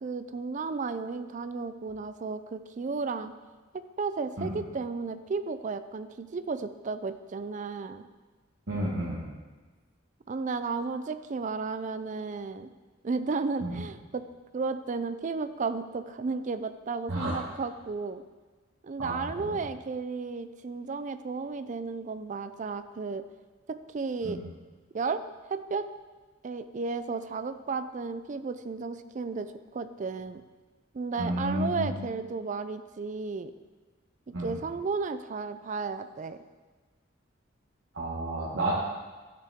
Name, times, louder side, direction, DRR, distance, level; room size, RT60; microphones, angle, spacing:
voice 1, 0.0-3.3 3.7-8.1 10.3-12.7 13.0-14.2 14.5-18.2 18.8-23.2 23.7-24.4 24.9-25.2 25.5-25.9 26.4-30.4 30.9-33.5 34.4-36.4, right 4 dB, 40° right, 11 dB, 0.4 m, -33 dB
voice 2, 8.7-9.3 13.6-13.8 17.1-17.4 19.0-19.6 24.2-24.4 31.2-31.9 34.3-34.5 37.9-38.7, right 1 dB, 70° right, -7 dB, 1.5 m, -31 dB
12.5 x 6.8 x 3.6 m, 1.3 s
head